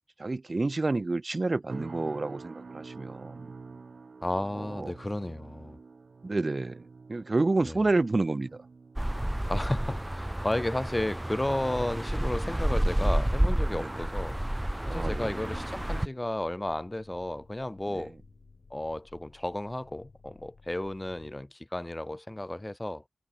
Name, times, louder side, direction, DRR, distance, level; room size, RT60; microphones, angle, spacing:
voice 1, 0.0-3.5 4.5-4.9 6.2-8.6 13.7-13.9 14.9-15.3 17.9-18.1, right 2 dB, 50° right, 0.9 m, -29 dB
sound 1, 1.7-16.9 17.2-17.6 18.1-18.3, right 4 dB, 85° right, 2.9 m, -50 dB
voice 2, 4.2-5.8 7.6-7.8 9.5-14.4 14.8-18.1 18.7-23.0, left 1 dB, 20° left, 2.6 m, -33 dB
sound 2, 9.0-16.1, right 1 dB, 15° right, 0.4 m, -30 dB
sound 3, 13.3-21.3, left 4 dB, 75° left, 6.6 m, -58 dB
wide cardioid pair, 65°, 0 cm